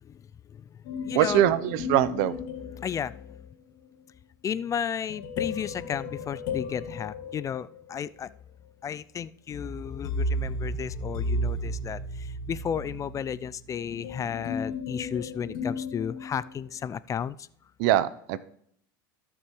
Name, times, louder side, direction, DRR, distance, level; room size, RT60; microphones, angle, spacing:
voice 1, 0.0-1.5 2.7-3.5 4.4-8.3 8.8-17.5, left 8 dB, 30° left, 17 dB, 0.4 m, -34 dB
sound 1, 0.8-3.5 5.1-8.1 9.5-16.8, left 2 dB, 70° left, 2.8 m, -34 dB
voice 2, 1.1-2.4 17.8-18.4, right 12 dB, 65° right, 15 dB, 0.7 m, -23 dB
16.5 x 6.0 x 3.2 m, 0.67 s
hypercardioid pair, 90°, 11 cm